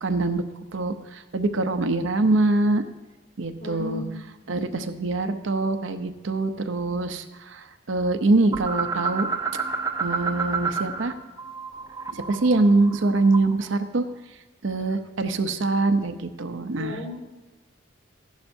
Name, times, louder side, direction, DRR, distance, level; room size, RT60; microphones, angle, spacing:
voice 1, 0.0-0.4 0.7-0.9 1.3-2.8 3.4-4.0 4.5-7.2 7.9-9.3 10.0-11.1 12.3-14.0 14.6-17.0, right 2 dB, 70° right, 8 dB, 0.7 m, -23 dB
voice 2, 3.6-4.3 4.5-4.9 16.8-17.2, left 3 dB, 85° left, -3 dB, 3.7 m, -36 dB
sound 1, 8.5-11.1 11.4-13.7, right 4 dB, 15° right, 0.6 m, -29 dB
15.0 x 11.5 x 2.7 m, 1.1 s
head